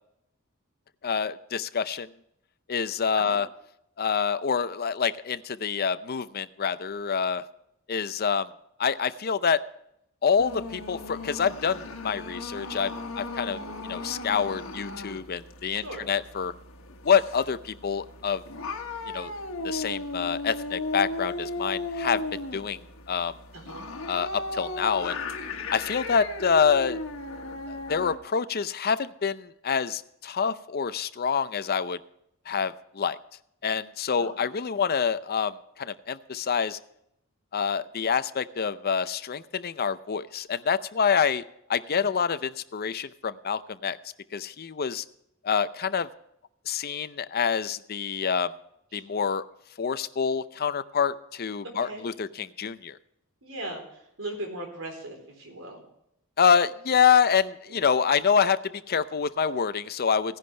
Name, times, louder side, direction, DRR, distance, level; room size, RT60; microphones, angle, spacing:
voice 1, 1.0-2.1 2.7-3.5 4.0-7.4 7.9-8.5 8.8-9.6 10.2-16.5 17.0-18.4 19.1-19.3 19.6-22.8 23.1-23.3 24.1-25.2 25.7-27.0 27.7-32.0 32.5-33.2 33.6-36.8 37.5-41.4 41.7-44.0 44.3-45.0 45.4-46.1 46.7-48.5 48.9-49.4 49.8-53.0 56.4-60.4, left 6 dB, 50° left, 13 dB, 0.6 m, -26 dB
sound 1, 10.4-28.2, left 2 dB, 70° left, 1.7 m, -36 dB
voice 2, 15.7-16.1 23.5-23.8 34.2-34.4 42.0-42.1 48.9-49.0 51.6-52.1 53.4-55.8 57.7-57.8, right 1 dB, 75° right, 3 dB, 3.9 m, -39 dB
16.0 x 10.5 x 3.3 m, 0.77 s
head